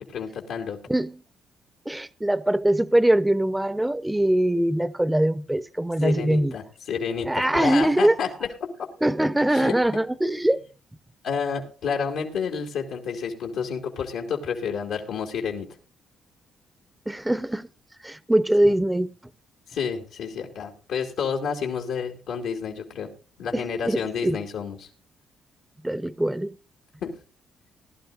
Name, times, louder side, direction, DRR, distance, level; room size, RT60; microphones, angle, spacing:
voice 1, 0.1-0.8 6.0-8.3 9.5-9.7 11.2-15.7 18.6-18.7 19.7-23.1 23.4-24.9 27.0-27.1, left 6 dB, 85° left, 2.4 m, -30 dB
voice 2, 1.9-6.5 7.2-8.2 9.0-10.6 17.1-17.7 18.0-19.1 23.5-24.4 25.8-26.6, right 1 dB, 10° right, 0.7 m, -22 dB
19.5 x 11.5 x 2.5 m
cardioid pair, 90°, 0 cm